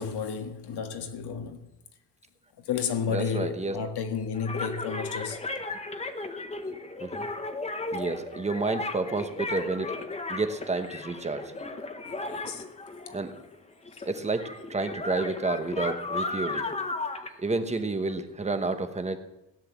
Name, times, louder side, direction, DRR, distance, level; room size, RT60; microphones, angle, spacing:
voice 1, 0.0-1.7 2.6-5.4 12.3-12.6 13.9-14.0, left 6 dB, 70° left, 1.8 m, -32 dB
voice 2, 3.1-3.7 7.0-7.3 7.9-9.9 10.3-11.5 13.1-13.3 14.0-16.7 17.4-19.2, right 3 dB, 15° right, 1.1 m, -30 dB
sound 1, 4.3-13.5 13.8-18.1, left 2 dB, 15° left, 1.0 m, -35 dB
17.0 x 10.0 x 7.3 m
cardioid pair, 175°, 41 cm